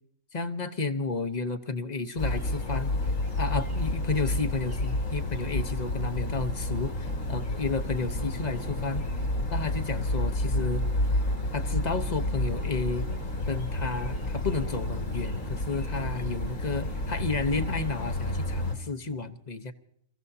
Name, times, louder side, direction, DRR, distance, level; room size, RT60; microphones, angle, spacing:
voice 1, 0.3-2.9 3.4-9.1 9.5-10.8 11.5-13.1 13.5-19.7, left 3 dB, 35° left, 9 dB, 0.9 m, -32 dB
sound 1, 2.2-18.8, left 1 dB, 80° left, 3.1 m, -30 dB
29.5 x 15.5 x 2.7 m, 0.69 s
omnidirectional pair, 1.5 m